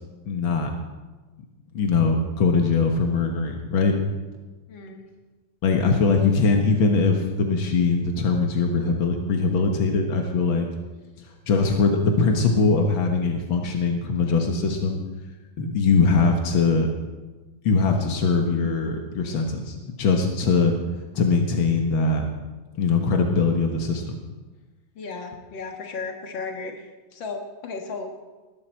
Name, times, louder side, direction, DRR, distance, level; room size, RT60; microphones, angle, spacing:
voice 1, 0.3-0.7 1.7-4.0 5.6-10.7 11.5-15.0 15.6-16.9 17.7-20.7 21.2-22.2 22.8-24.2, left 4 dB, 90° left, 3 dB, 2.2 m, -21 dB
voice 2, 4.7-5.0 25.0-28.1, left 4 dB, 75° left, 3 dB, 2.3 m, -35 dB
19.5 x 14.0 x 4.5 m, 1.2 s
omnidirectional pair, 2.1 m